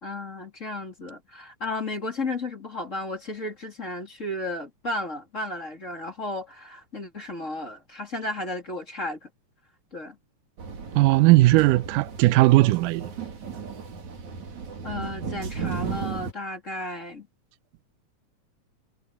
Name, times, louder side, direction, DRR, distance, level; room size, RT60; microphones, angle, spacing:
voice 1, 0.0-9.3 9.9-10.2 14.8-17.3, left 2 dB, 25° left, 3.0 m, -33 dB
sound 1, 10.6-16.3, right 5 dB, 65° right, 4.5 m, -35 dB
voice 2, 11.0-13.1, right 19 dB, 90° right, 2.2 m, -18 dB
omnidirectional pair, 3.7 m